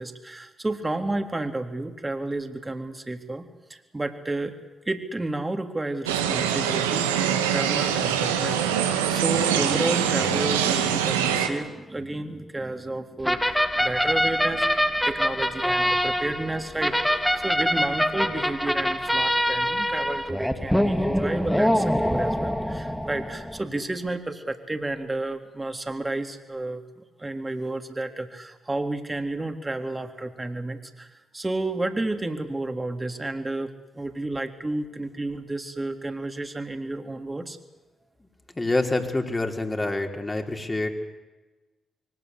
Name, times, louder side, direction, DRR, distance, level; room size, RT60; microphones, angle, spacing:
voice 1, 0.0-4.5 4.9-17.0 17.3-37.6, right 2 dB, 20° right, 5 dB, 3.6 m, -31 dB
sound 1, 6.1-11.5, right 9 dB, 90° right, 2.0 m, -24 dB
sound 2, 13.2-23.6, equal, 5° left, 3.1 m, -24 dB
voice 2, 38.5-40.9, left 2 dB, 25° left, 3 dB, 5.0 m, -26 dB
26.5 x 23.5 x 8.4 m, 1.2 s
hypercardioid pair, 40°, 0 cm